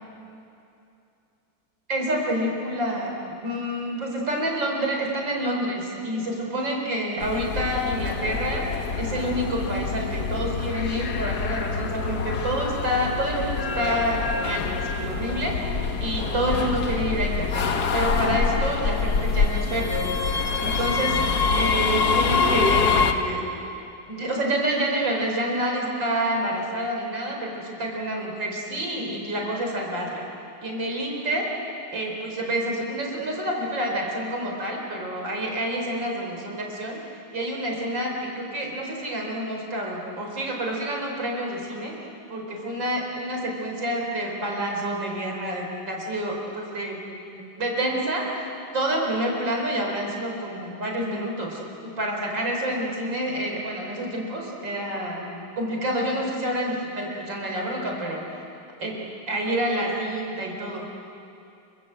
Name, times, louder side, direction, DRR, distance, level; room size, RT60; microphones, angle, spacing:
voice 1, 1.9-8.6 9.0-15.6 16.0-20.1 20.6-21.2 21.5-23.4 24.1-30.2 30.6-31.5 31.9-37.0 37.3-41.9 42.3-47.0 47.4-58.2 58.8-59.0 59.3-60.9, right 1 dB, 70° right, 0 dB, 5.3 m, -28 dB
sound 1, 7.2-23.1, left 5 dB, 55° left, 1.8 m, -25 dB
28.5 x 25.0 x 7.8 m, 2.7 s
omnidirectional pair, 2.1 m